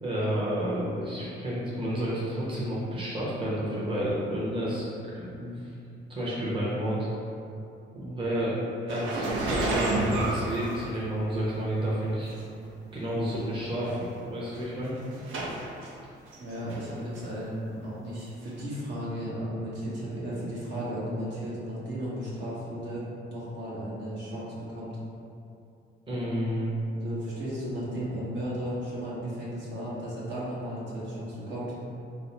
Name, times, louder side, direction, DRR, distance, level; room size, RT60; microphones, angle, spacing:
voice 1, 0.0-4.8 5.1-5.7 6.1-7.1 7.9-12.3 12.9-14.9 26.1-26.7, equal, 25° right, -8 dB, 0.9 m, -30 dB
sound 1, 8.9-11.5 12.3-12.4 13.3-13.4 13.6-14.0 14.5-15.9 16.3-16.9 17.2-17.3 18.5-18.6, right 2 dB, 80° right, 0.5 m, -30 dB
voice 2, 16.4-25.0 26.9-31.7, equal, 65° right, -8 dB, 1.1 m, -35 dB
3.0 x 2.0 x 4.1 m, 2.6 s
cardioid pair, 90°, 20 cm